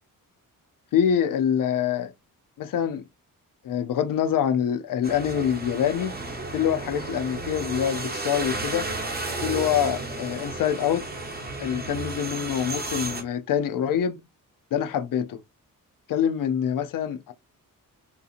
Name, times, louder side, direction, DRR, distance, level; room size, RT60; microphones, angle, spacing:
voice 1, 0.9-2.1 2.6-3.1 3.6-6.1 6.5-8.9 9.4-11.1 11.6-14.2 14.7-15.4 16.1-17.3, left 9 dB, 70° left, 0.5 m, -25 dB
sound 1, 5.0-13.2, right 2 dB, 30° right, 0.8 m, -33 dB
3.8 x 2.8 x 2.4 m
wide cardioid pair, 140°, 33 cm